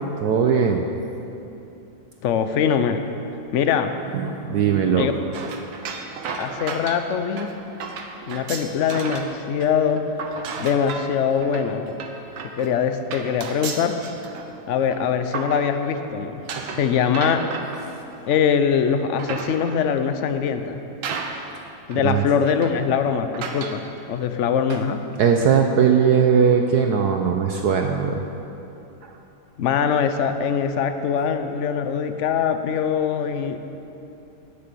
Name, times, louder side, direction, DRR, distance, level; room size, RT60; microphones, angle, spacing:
voice 1, 0.2-0.8 4.1-5.1 22.0-22.2 24.7-24.8 25.2-28.2, right 7 dB, 65° right, 3 dB, 1.1 m, -19 dB
voice 2, 2.2-3.0 3.5-3.9 4.9-5.1 6.4-7.5 8.3-10.0 10.6-12.0 12.6-14.0 14.7-16.4 16.7-17.4 18.3-20.8 21.9-23.8 24.1-25.0 29.6-33.6, left 7 dB, 65° left, 8 dB, 0.7 m, -22 dB
sound 1, 5.3-9.4 9.6-16.0 16.5-18.5 19.0-19.9 20.6-20.7 21.0-21.6 21.9-22.0 22.5-22.9 23.3-23.8, right 5 dB, 90° right, 1.8 m, -34 dB
18.0 x 6.9 x 6.9 m, 2.9 s
omnidirectional pair, 2.1 m